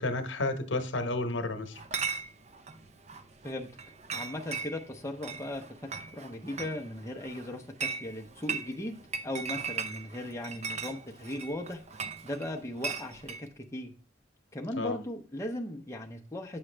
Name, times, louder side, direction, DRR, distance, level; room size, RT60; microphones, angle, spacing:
voice 1, 0.0-1.8 14.8-15.0, left 2 dB, 70° left, 7 dB, 1.0 m, -31 dB
Chatter / Chink clink, 1.7-13.4, right 5 dB, 35° right, 0.6 m, -39 dB
voice 2, 4.1-5.6 6.1-9.0 9.2-11.8 12.2-13.9 14.5-16.6, left 1 dB, 15° left, 1 dB, 0.7 m, -37 dB
8.7 x 6.1 x 3.3 m, 0.38 s
head